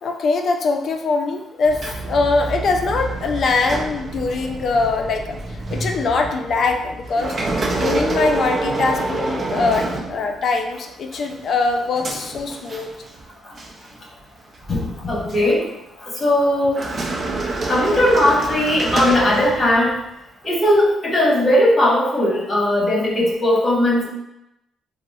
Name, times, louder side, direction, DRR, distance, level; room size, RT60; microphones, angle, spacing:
voice 1, 0.0-5.4 5.7-7.4 7.7-12.9, left 3 dB, 60° left, 4 dB, 0.3 m, -22 dB
sound 1, 1.6-10.7 11.1-13.3 13.6-13.8 14.5-15.5 16.6-20.0, right 2 dB, 45° right, 0.5 m, -27 dB
voice 2, 14.7-15.6 16.0-16.8 17.7-19.9 20.4-24.1, left 1 dB, 35° left, -5 dB, 1.2 m, -18 dB
3.7 x 2.0 x 2.3 m, 0.88 s
cardioid pair, 90°, 0 cm